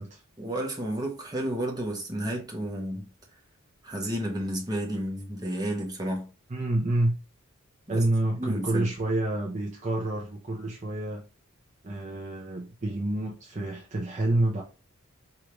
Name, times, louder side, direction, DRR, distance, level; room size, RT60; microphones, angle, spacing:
voice 1, 0.4-3.1 3.8-6.3 7.9-8.0 8.4-8.9, right 1 dB, 20° right, 1.0 m, -31 dB
voice 2, 6.5-7.1 7.9-11.2 11.8-14.6, right 1 dB, 35° right, 0.7 m, -28 dB
4.8 x 2.7 x 3.0 m
head